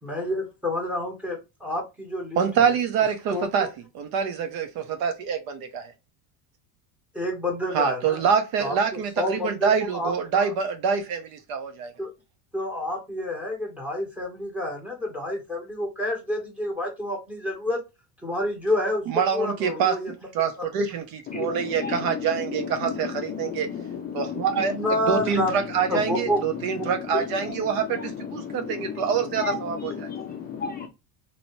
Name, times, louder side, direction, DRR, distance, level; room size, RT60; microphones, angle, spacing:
voice 1, 0.0-2.7 3.3-3.4 7.1-8.2 8.6-8.7 9.2-10.5 12.0-12.1 12.5-17.8 18.2-19.0 19.3-20.1 21.3-21.4 24.6-25.5 25.9-26.4 26.8-26.9, left 1 dB, 5° right, 1.4 m, -29 dB
voice 2, 2.4-3.7 3.9-5.9 7.7-11.9 19.1-23.7 24.1-24.7 25.1-30.1, right 6 dB, 60° right, 0.9 m, -26 dB
voice 3, 21.3-24.9 25.2-30.9, left 7 dB, 25° left, 0.4 m, -34 dB
2.9 x 2.7 x 3.0 m
cardioid pair, 140°, 41 cm